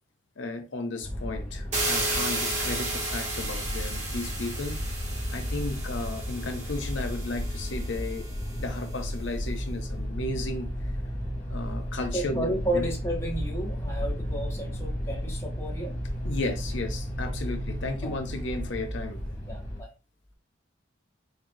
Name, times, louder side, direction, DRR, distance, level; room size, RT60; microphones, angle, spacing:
voice 1, 0.4-4.8 5.3-10.7 11.5-12.9 16.2-19.2, left 2 dB, 70° left, 0.7 m, -34 dB
sound 1, 1.0-19.8, equal, 40° left, 1.1 m, -33 dB
sound 2, 1.7-8.6, right 2 dB, 35° right, 1.0 m, -33 dB
voice 2, 12.1-16.1 17.2-18.1 19.4-19.9, right 1 dB, 15° left, 0.8 m, -33 dB
4.3 x 3.1 x 2.6 m
head